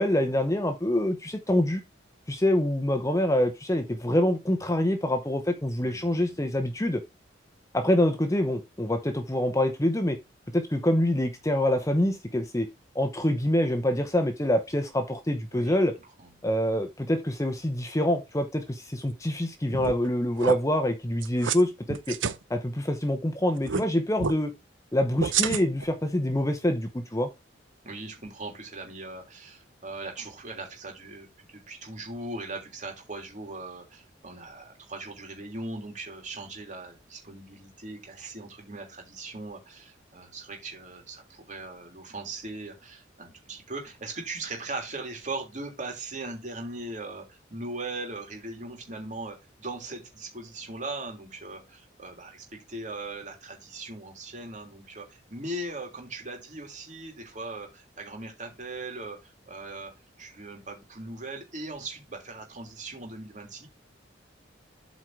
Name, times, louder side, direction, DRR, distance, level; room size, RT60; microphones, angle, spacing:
voice 1, 0.0-1.8 2.3-7.0 7.7-10.2 10.5-12.7 12.9-15.9 16.4-22.2 22.5-24.5 24.9-27.3, left 1 dB, 15° left, 0.8 m, -26 dB
voice 2, 5.8-6.8 15.5-15.8 16.2-16.3 27.8-59.9 60.2-63.7, right 2 dB, 40° right, 3.1 m, -39 dB
sound 1, 19.7-20.1 20.4-20.5 21.2-21.6 21.9-22.4 23.6-23.8 24.2-24.4 25.2-25.9, right 6 dB, 85° right, 0.8 m, -28 dB
8.3 x 4.5 x 4.8 m
head